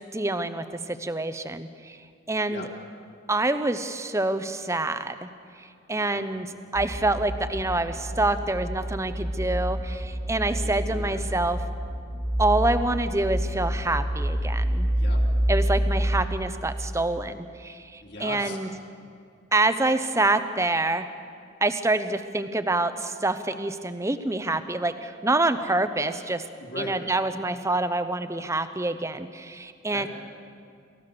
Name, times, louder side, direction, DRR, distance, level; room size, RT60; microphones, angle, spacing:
voice 1, 0.1-2.0 2.3-2.7 3.3-5.3 5.6-11.6 12.4-14.9 15.5-18.7 19.5-21.1 21.6-26.4 26.8-30.1, right 2 dB, 15° right, 10 dB, 0.8 m, -26 dB
voice 2, 5.9-6.2 10.4-11.2 14.9-15.2 18.0-18.6 26.6-26.9 29.9-30.1, left 2 dB, 55° left, -2 dB, 3.4 m, -39 dB
sound 1, 6.7-16.2, equal, 30° left, 2.0 m, -28 dB
28.0 x 14.5 x 6.9 m, 2.3 s
head